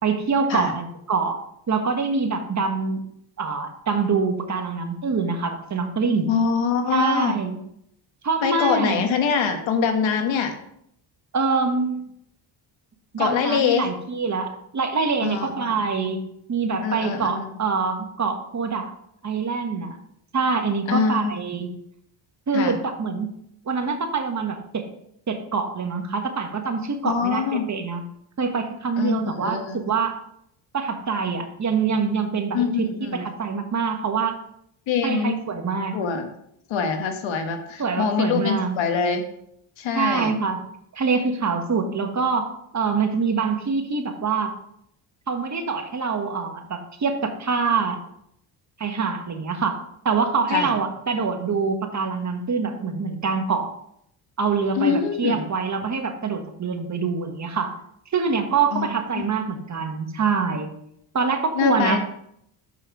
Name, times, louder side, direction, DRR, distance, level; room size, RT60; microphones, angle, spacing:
voice 1, 0.0-1.4 1.7-3.0 3.4-6.3 6.9-7.6 8.2-9.0 11.3-12.0 13.1-16.2 16.5-18.9 19.2-20.0 20.3-21.7 22.5-23.3 23.7-24.9 25.3-27.4 27.7-28.0 28.4-29.6 29.9-30.2 30.7-32.9 33.1-34.4 35.0-36.0 37.8-38.7 39.9-40.6 40.9-44.5 45.3-48.0 48.8-53.7 54.4-57.7 58.1-60.7 61.1-62.0, right 5 dB, 35° right, 5 dB, 1.4 m, -25 dB
voice 2, 6.3-7.4 8.4-10.6 13.2-13.9 15.2-15.7 16.8-17.5 20.9-21.4 22.5-22.8 27.0-27.7 29.0-29.8 32.5-33.2 34.9-35.4 35.9-36.3 36.7-39.2 39.8-40.3 50.5-50.8 54.8-55.5 58.7-58.9 59.2-59.3 61.5-62.0, left 6 dB, 75° left, 6 dB, 1.3 m, -24 dB
6.9 x 5.6 x 4.9 m, 0.73 s
supercardioid pair, 75°, 47 cm